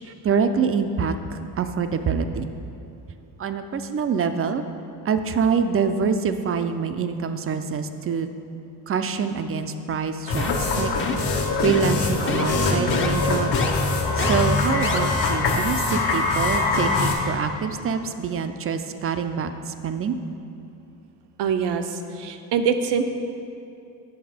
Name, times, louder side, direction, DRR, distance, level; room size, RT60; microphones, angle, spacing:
voice 1, 0.1-2.5 3.4-4.6 5.0-8.3 8.9-10.9 11.6-13.6 13.9-20.1, right 6 dB, 30° right, 8 dB, 0.5 m, -25 dB
sound 1, 10.3-17.1, left 3 dB, 65° left, 1.5 m, -23 dB
sound 2, 10.4-10.7 11.0-11.3 11.6-11.9 12.3-12.4 12.9-13.1 13.5-13.7 14.2-14.3 14.8-15.0, left 5 dB, 25° left, 0.8 m, -28 dB
voice 2, 21.4-23.0, right 6 dB, 65° right, 7 dB, 0.8 m, -24 dB
8.1 x 6.2 x 5.0 m, 2.7 s
supercardioid pair, 85°, 45 cm